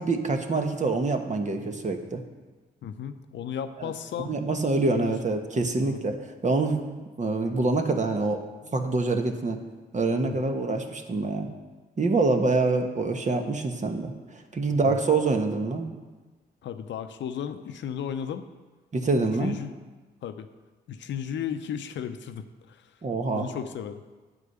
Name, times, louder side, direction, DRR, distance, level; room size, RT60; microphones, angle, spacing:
voice 1, 0.0-2.2 3.8-3.9 4.2-6.2 6.4-6.8 7.2-8.4 8.7-9.6 9.9-11.5 12.0-15.9 18.9-19.5 23.0-23.5, right 3 dB, 40° right, 5 dB, 1.3 m, -26 dB
voice 2, 2.8-4.4 4.8-5.1 5.8-6.0 8.6-8.8 10.2-10.6 14.8-15.0 16.6-18.5 19.4-19.7 20.2-20.5 20.9-22.9 23.3-24.0, left 8 dB, 70° left, 9 dB, 0.6 m, -35 dB
9.9 x 4.9 x 8.0 m, 1.3 s
supercardioid pair, 60°, 19 cm